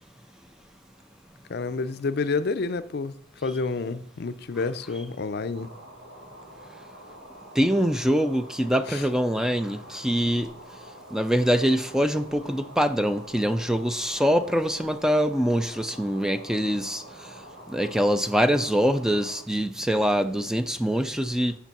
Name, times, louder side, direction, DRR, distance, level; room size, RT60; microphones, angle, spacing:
voice 1, 1.5-3.1 3.4-5.7 8.9-9.0, left 4 dB, 55° left, 0.5 m, -29 dB
sound 1, 5.5-19.4, right 1 dB, 90° right, 1.6 m, -46 dB
voice 2, 7.6-10.5 11.1-17.0 17.7-21.6, equal, 5° right, 0.3 m, -24 dB
7.1 x 6.8 x 5.9 m
head